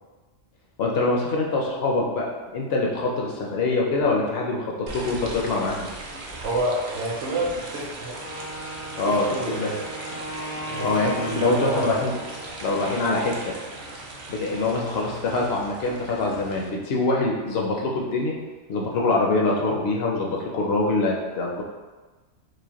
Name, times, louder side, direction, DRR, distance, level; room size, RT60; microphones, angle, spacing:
voice 1, 0.8-5.9 9.0-9.3 9.6-9.7 10.8-12.2 12.6-13.5 14.3-18.4 18.7-21.6, left 3 dB, 65° left, -2 dB, 0.8 m, -24 dB
sound 1, 4.9-16.7, right 2 dB, 50° right, 0.6 m, -38 dB
voice 2, 6.4-8.2 9.1-9.9 10.6-12.0, right 2 dB, 70° right, -2 dB, 1.0 m, -29 dB
Wind instrument woodwind instrument, 8.1-13.0, equal, 80° left, 1.3 m, -37 dB
4.9 x 2.1 x 2.8 m, 1.2 s
omnidirectional pair, 1.3 m